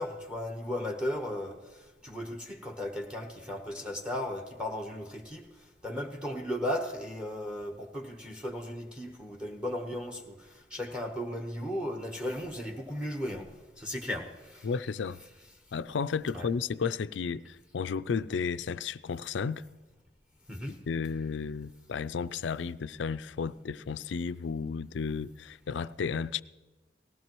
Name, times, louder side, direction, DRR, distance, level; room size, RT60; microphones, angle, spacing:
voice 1, 0.0-5.4 5.8-13.5 13.8-14.7 16.3-16.5 20.5-20.8, left 1 dB, 5° right, 1.0 m, -36 dB
voice 2, 14.6-15.2 15.7-19.6 20.9-26.4, left 5 dB, 80° left, 0.4 m, -33 dB
19.0 x 16.0 x 3.0 m
head